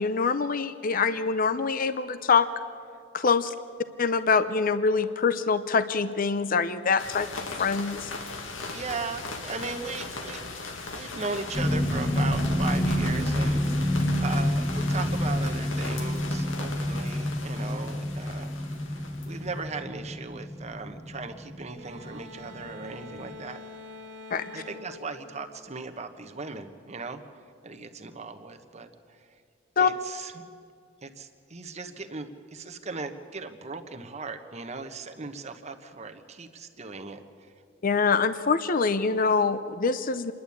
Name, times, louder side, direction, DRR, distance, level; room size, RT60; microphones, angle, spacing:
voice 1, 0.0-2.5 3.1-3.5 4.0-8.1 24.3-24.4 29.8-29.9 37.8-40.3, left 5 dB, 45° left, 12 dB, 0.6 m, -24 dB
sound 1, 7.0-19.6, left 3 dB, 90° left, 2.0 m, -38 dB
voice 2, 8.7-10.5 10.9-18.9 19.3-23.6 24.5-27.2 27.6-29.2 29.8-30.4 31.0-37.2, right 4 dB, 35° right, 6 dB, 1.2 m, -38 dB
sound 2, 11.5-22.2 22.5-22.9 23.3-23.4, equal, 10° left, 1.4 m, -28 dB
sound 3, 21.8-26.2, left 2 dB, 70° right, 1.9 m, -46 dB
27.0 x 11.5 x 8.6 m, 2.3 s
head